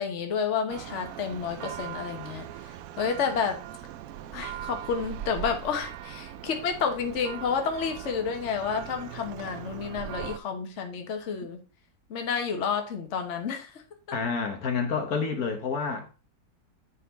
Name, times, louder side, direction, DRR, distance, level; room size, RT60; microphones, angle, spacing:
voice 1, 0.0-2.5 3.0-3.6 4.3-11.6 12.1-13.8, left 6 dB, 50° left, 1.3 m, -30 dB
Church bell, 0.7-10.4, right 12 dB, 70° right, 0.9 m, -40 dB
voice 2, 14.1-16.1, left 5 dB, 65° left, 1.5 m, -29 dB
9.3 x 4.1 x 4.0 m
omnidirectional pair, 1.8 m